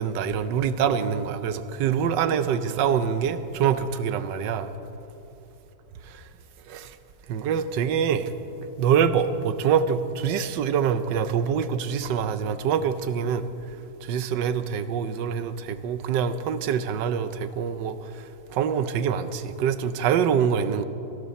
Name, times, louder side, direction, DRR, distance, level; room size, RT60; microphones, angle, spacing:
voice 1, 0.0-4.7 6.7-6.9 7.3-8.3 8.8-13.4 14.1-18.0 18.5-20.8, right 7 dB, 90° right, 12 dB, 1.4 m, -25 dB
25.5 x 11.5 x 4.2 m, 2.9 s
omnidirectional pair, 1.9 m